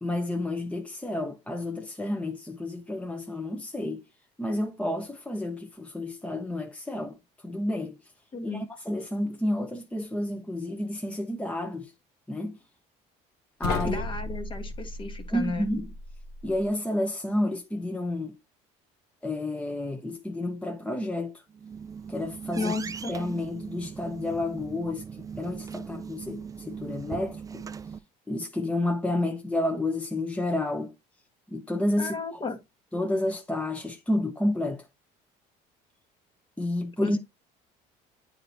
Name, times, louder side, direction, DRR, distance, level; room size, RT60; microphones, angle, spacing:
voice 1, 0.0-4.0 4.4-7.2 7.4-7.9 8.4-11.9 12.3-12.6 13.6-14.0 15.3-15.9 16.4-18.3 19.2-21.4 22.1-22.7 23.1-25.0 25.4-27.6 28.3-30.9 31.5-32.2 32.9-34.8 36.6-37.2, left 1 dB, 5° left, 0.7 m, -30 dB
voice 2, 8.3-8.6 13.8-15.7 22.5-23.2 32.0-32.6 37.0-37.2, left 3 dB, 30° left, 1.3 m, -33 dB
sound 1, 13.6-16.7, left 3 dB, 70° left, 0.8 m, -35 dB
sound 2, 21.5-28.0, right 6 dB, 20° right, 0.4 m, -39 dB
8.7 x 4.3 x 2.7 m
supercardioid pair, 95°, 17 cm